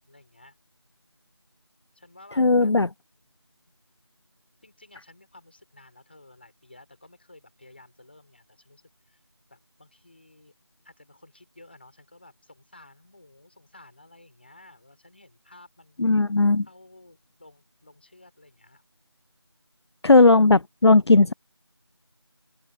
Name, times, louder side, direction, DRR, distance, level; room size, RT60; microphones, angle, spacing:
voice 1, 0.1-0.6 1.9-2.7 4.6-9.2 9.5-10.5 10.8-16.0 16.6-18.8, left 2 dB, 25° left, 4.7 m, -53 dB
voice 2, 2.4-2.9 16.0-16.7 20.0-21.3, left 3 dB, 70° left, 0.5 m, -17 dB
open air
figure-of-eight pair, 175°, 14 cm